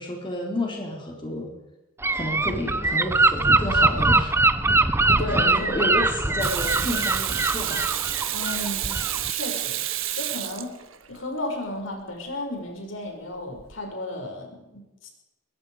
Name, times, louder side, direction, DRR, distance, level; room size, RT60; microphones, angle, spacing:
voice 1, 0.0-1.5 2.1-4.4 4.7-5.0 5.3-8.0, left 1 dB, 25° left, -1 dB, 4.4 m, -31 dB
Gull seagull / Wind, 2.0-9.3, right 2 dB, 10° right, 0.7 m, -22 dB
voice 2, 5.0-5.8 8.3-9.0 9.3-9.8 10.1-10.8 11.1-15.1, left 1 dB, 80° left, 2 dB, 6.5 m, -34 dB
Water tap faucet / Sink (filling or washing), 6.4-11.2 13.6-13.7, right 13 dB, 90° right, 1.5 m, -29 dB
23.0 x 22.0 x 5.1 m, 0.96 s
head